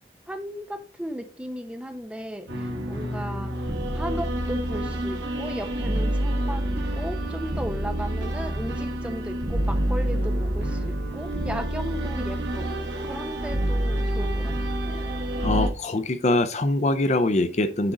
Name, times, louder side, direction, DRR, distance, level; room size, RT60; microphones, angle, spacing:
voice 1, 0.3-12.7 13.0-14.5, equal, 5° right, 0.7 m, -36 dB
sound 1, 2.5-15.7, right 1 dB, 80° right, 1.5 m, -27 dB
voice 2, 15.4-17.9, left 2 dB, 40° left, 0.5 m, -23 dB
9.8 x 3.8 x 3.9 m
head